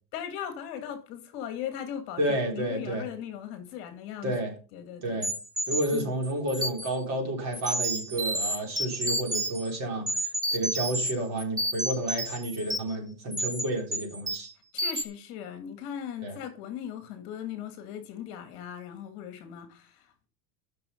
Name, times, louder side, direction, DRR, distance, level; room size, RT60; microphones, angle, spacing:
voice 1, 0.1-4.3 4.7-5.3 5.9-6.1 14.7-20.3, left 9 dB, 50° left, 2.0 m, -38 dB
voice 2, 2.2-3.0 4.2-4.5 5.0-5.3 5.7-14.5 16.2-16.4, right 1 dB, 35° right, 3.7 m, -31 dB
sound 1, 5.2-7.0 7.5-9.7 10.1-11.1 11.4-12.9 13.3-13.6 13.9-14.5 14.8-15.0, right 1 dB, 10° right, 1.2 m, -30 dB
10.5 x 6.2 x 5.6 m
supercardioid pair, 150°, 47 cm